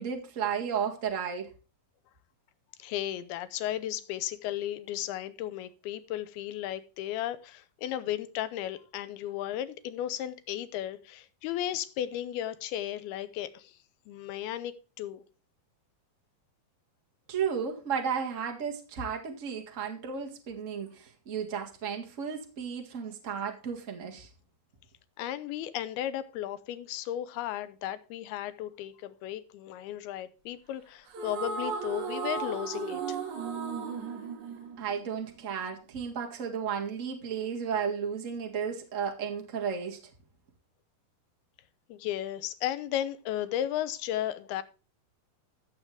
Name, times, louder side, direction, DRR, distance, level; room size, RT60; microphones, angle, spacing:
voice 1, 0.0-1.5 17.3-24.3 34.8-40.0, right 7 dB, 40° right, 1.1 m, -33 dB
voice 2, 2.8-13.8 14.1-15.2 25.2-33.2 41.9-44.6, left 12 dB, 90° left, 2.7 m, -35 dB
sound 1, 31.1-35.5, right 5 dB, 55° right, 3.0 m, -35 dB
14.0 x 7.4 x 3.3 m
omnidirectional pair, 4.3 m